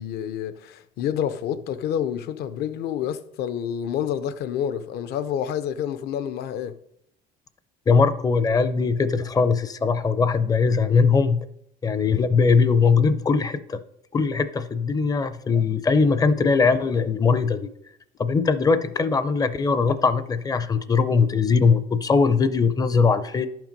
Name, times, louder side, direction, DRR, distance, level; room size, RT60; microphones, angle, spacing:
voice 1, 0.0-6.7, left 9 dB, 70° left, 0.7 m, -28 dB
voice 2, 7.9-11.4 11.8-13.8 14.1-17.7 18.2-23.5, left 5 dB, 20° left, 0.5 m, -20 dB
11.0 x 5.9 x 5.2 m
cardioid pair, 155°, 17 cm